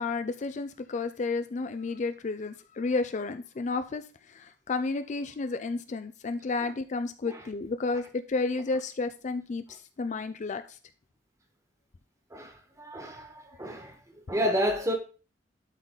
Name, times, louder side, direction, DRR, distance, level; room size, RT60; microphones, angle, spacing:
voice 1, 0.0-10.8, left 3 dB, 40° left, 0.4 m, -32 dB
voice 2, 12.3-14.0 14.3-14.9, equal, 15° right, 1.5 m, -30 dB
12.0 x 4.0 x 3.9 m
head